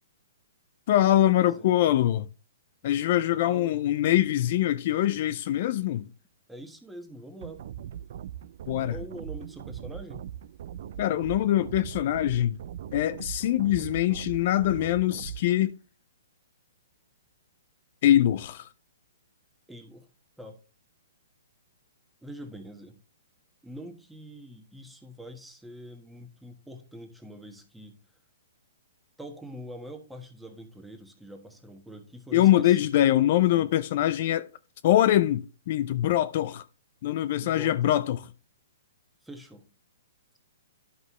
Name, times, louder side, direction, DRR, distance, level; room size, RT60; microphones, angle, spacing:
voice 1, 0.9-2.3 2.8-6.1 8.7-9.0 11.0-12.6 12.9-15.7 18.0-18.7 32.3-34.5 34.8-36.6 37.0-38.2, left 13 dB, 50° left, 0.4 m, -23 dB
voice 2, 1.4-1.7 2.8-2.9 3.4-3.8 6.5-7.6 8.9-10.2 19.7-20.1 20.4-20.6 22.2-23.0 23.6-28.0 29.2-32.9 33.2-33.7 37.4-37.9 39.2-39.7, equal, 5° right, 1.3 m, -44 dB
sound 1, 7.4-15.4, right 10 dB, 55° right, 0.4 m, -40 dB
11.0 x 5.4 x 3.1 m
hypercardioid pair, 145°, 0 cm